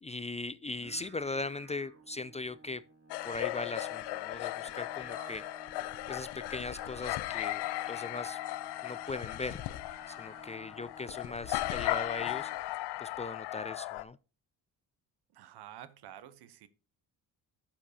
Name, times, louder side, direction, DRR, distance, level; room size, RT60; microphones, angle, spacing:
voice 1, 0.0-2.8 3.2-5.4 6.1-8.4 8.8-9.6 10.1-12.5 13.0-14.2, left 3 dB, 20° left, 0.3 m, -39 dB
Singing, 0.7-12.9, right 4 dB, 35° right, 2.4 m, -55 dB
sound 1, 3.1-14.0, left 17 dB, 90° left, 0.6 m, -37 dB
voice 2, 15.3-16.7, right 11 dB, 75° right, 0.9 m, -50 dB
11.5 x 7.4 x 2.7 m
cardioid pair, 75°, 39 cm